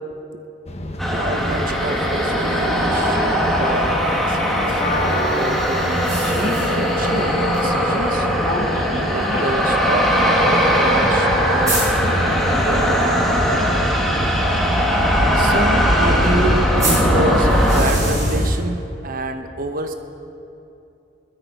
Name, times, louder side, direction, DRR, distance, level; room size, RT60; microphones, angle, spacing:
sound 1, 0.7-18.6, equal, 35° left, 1.2 m, -24 dB
sound 2, 1.0-17.8, equal, ahead, 1.8 m, -20 dB
voice 1, 1.1-6.2 6.5-8.3 9.1-11.8 12.2-13.4 15.3-19.9, right 2 dB, 50° right, 7 dB, 1.0 m, -28 dB
sound 3, 1.4-3.5 6.0-7.2 7.5-7.6 8.0-8.1 9.0-9.1 10.9-11.0 11.2-11.3 11.7-11.9 16.8-18.5, right 2 dB, 20° right, 4.6 m, -28 dB
19.5 x 13.5 x 4.8 m, 2.9 s
head